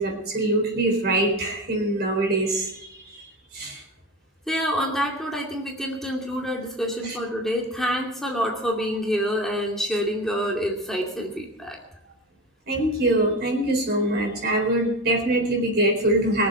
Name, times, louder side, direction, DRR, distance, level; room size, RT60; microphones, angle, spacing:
voice 1, 0.0-3.8 7.0-7.2 12.7-16.5, right 1 dB, 55° right, 2 dB, 4.2 m, -24 dB
voice 2, 4.5-11.8, equal, ahead, -1 dB, 2.4 m, -27 dB
22.5 x 7.6 x 7.8 m, 0.77 s
head